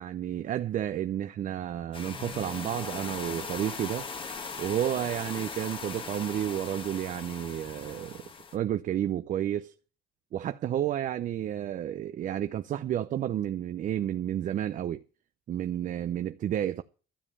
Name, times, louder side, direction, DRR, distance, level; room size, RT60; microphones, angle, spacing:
voice 1, 0.0-4.1 4.6-9.7 10.3-15.0 15.5-16.8, right 11 dB, 50° right, 0.6 m, -31 dB
sound 1, 1.9-8.6, left 4 dB, 30° left, 1.3 m, -39 dB
12.5 x 7.3 x 6.9 m
cardioid pair, 110°, 17 cm